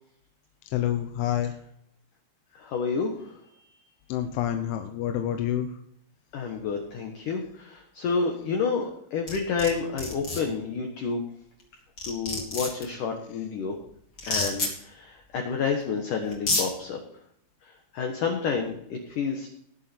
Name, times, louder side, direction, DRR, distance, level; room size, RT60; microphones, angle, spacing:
voice 1, 0.7-1.5 4.1-5.7, left 11 dB, 85° left, 6 dB, 3.3 m, -27 dB
voice 2, 2.5-3.6 6.3-11.2 12.0-13.8 14.3-17.0 17.9-19.5, left 5 dB, 65° left, 3 dB, 2.2 m, -29 dB
sound 1, 9.3-9.7 10.0-10.4 11.6-11.7 12.0-12.8 14.2-14.7 15.8-15.9 16.3-16.6, left 3 dB, 25° left, 2.5 m, -28 dB
19.5 x 7.4 x 4.4 m, 0.71 s
omnidirectional pair, 5.3 m